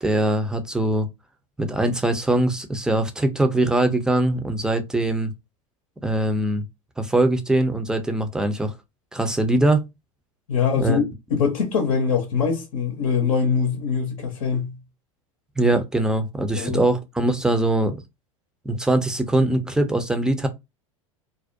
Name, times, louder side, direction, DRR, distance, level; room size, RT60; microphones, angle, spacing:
voice 1, 0.0-1.1 1.6-5.3 6.0-6.6 7.0-8.7 9.1-9.8 10.8-11.0 15.6-18.0 18.6-20.5, right 1 dB, 5° right, 0.5 m, -22 dB
voice 2, 10.5-11.0 11.3-14.8 16.6-16.8, left 6 dB, 75° left, 0.6 m, -23 dB
2.5 x 2.1 x 2.5 m
hypercardioid pair, 90°, 18 cm